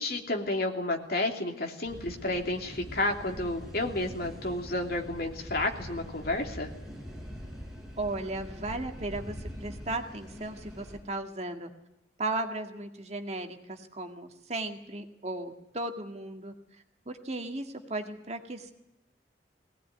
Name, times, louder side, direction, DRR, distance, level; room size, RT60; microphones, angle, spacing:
voice 1, 0.0-6.7, left 2 dB, 60° left, 2 dB, 3.0 m, -31 dB
sound 1, 1.9-11.0, equal, ahead, 5.5 m, -43 dB
voice 2, 8.0-11.7 12.2-16.5 17.1-18.7, right 2 dB, 35° right, 5 dB, 1.9 m, -36 dB
20.5 x 18.0 x 9.4 m, 0.95 s
head